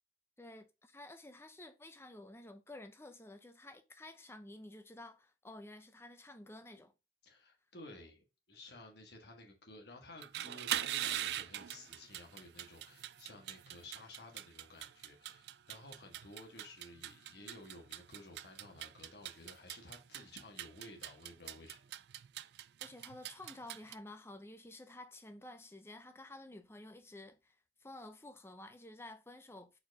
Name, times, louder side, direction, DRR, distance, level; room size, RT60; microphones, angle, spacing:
voice 1, 0.4-6.9 22.8-27.6 27.8-29.8, left 1 dB, 15° left, 0.6 m, -52 dB
voice 2, 7.2-21.8, left 2 dB, 60° left, 1.7 m, -54 dB
sound 1, 10.1-23.9, right 12 dB, 60° right, 0.3 m, -43 dB
4.7 x 4.4 x 4.8 m
head